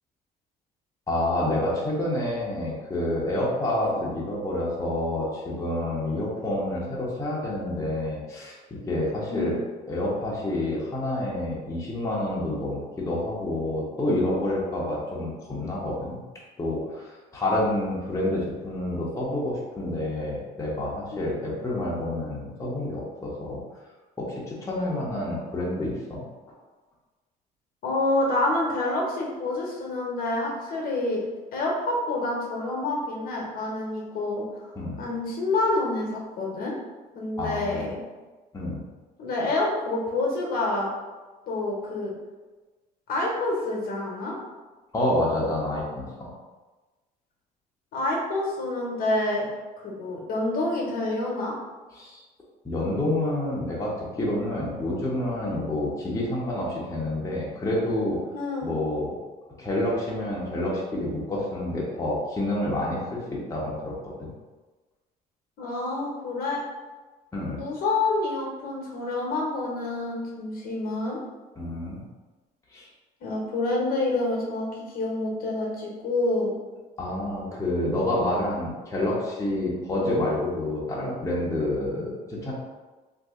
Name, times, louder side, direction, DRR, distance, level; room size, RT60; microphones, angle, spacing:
voice 1, 1.1-9.6 9.9-16.2 16.6-23.6 24.2-26.2 34.8-35.0 37.4-37.9 38.5-38.8 44.9-46.3 52.0-52.2 52.6-58.2 58.6-59.2 59.6-64.3 67.3-67.6 71.6-72.1 72.7-72.9 77.0-82.5, left 1 dB, 20° left, -5 dB, 0.8 m, -28 dB
voice 2, 27.8-31.2 31.5-34.7 35.0-36.7 37.1-38.0 39.2-40.9 41.5-42.1 43.1-44.3 47.9-49.5 49.8-51.5 58.3-58.7 65.6-66.6 67.5-71.2 73.2-74.7 74.9-76.5, left 2 dB, 60° left, -2 dB, 1.0 m, -27 dB
2.7 x 2.6 x 3.6 m, 1.3 s
cardioid pair, 110°, 17 cm